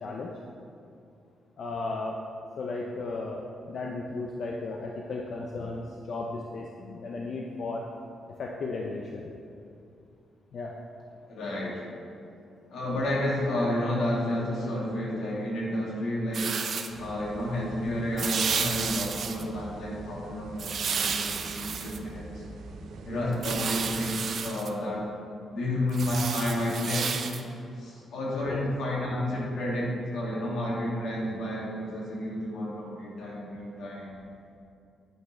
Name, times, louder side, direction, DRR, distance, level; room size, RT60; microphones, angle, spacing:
voice 1, 0.0-0.3 1.6-2.2 2.6-3.4 3.7-7.8 8.4-9.3 10.5-10.8 23.1-23.4 28.5-28.6, left 3 dB, 50° left, -1 dB, 0.6 m, -35 dB
voice 2, 11.3-11.8 12.7-16.5 17.0-22.4 23.0-25.1 25.5-27.2 27.7-34.2, left 1 dB, 75° left, -4 dB, 2.4 m, -31 dB
sound 1, 16.3-16.9 18.2-19.4 20.6-22.0 23.3-24.7 25.9-27.4, right 6 dB, 45° right, 0.5 m, -31 dB
sound 2, 16.9-24.1, right 2 dB, 90° right, 1.0 m, -44 dB
9.3 x 9.3 x 3.3 m, 2.6 s
wide cardioid pair, 170°, 0 cm